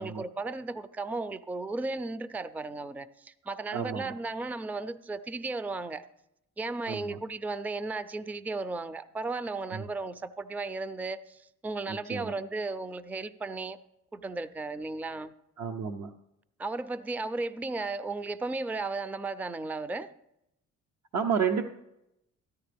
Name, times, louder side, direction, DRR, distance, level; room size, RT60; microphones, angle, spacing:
voice 1, 0.0-6.0 6.6-13.8 14.1-15.3 16.6-20.1, right 3 dB, 5° right, 0.3 m, -35 dB
voice 2, 3.7-4.1 6.9-7.2 9.7-9.8 11.9-12.3 15.6-16.1 21.1-21.7, right 6 dB, 70° right, 0.7 m, -31 dB
14.0 x 9.9 x 3.4 m
cardioid pair, 90°, 30 cm